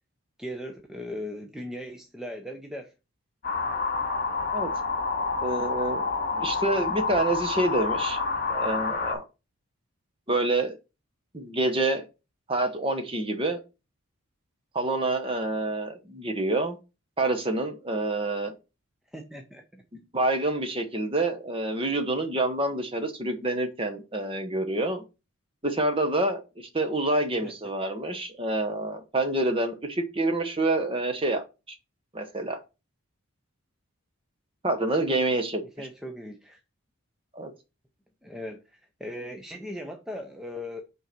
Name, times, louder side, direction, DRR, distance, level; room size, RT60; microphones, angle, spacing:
voice 1, 0.4-2.9 19.1-19.8 27.4-27.5 35.8-36.6 38.2-40.8, left 1 dB, ahead, 0.6 m, -38 dB
sound 1, 3.4-9.1, left 4 dB, 40° left, 2.3 m, -28 dB
voice 2, 5.4-6.0 6.3-8.2 8.5-9.2 10.3-10.8 11.3-12.1 12.5-13.6 14.7-16.8 17.2-18.5 20.1-25.0 25.6-31.4 32.1-32.6 34.6-35.9 37.3-37.5, right 2 dB, 25° right, 1.0 m, -27 dB
5.5 x 3.8 x 6.0 m
head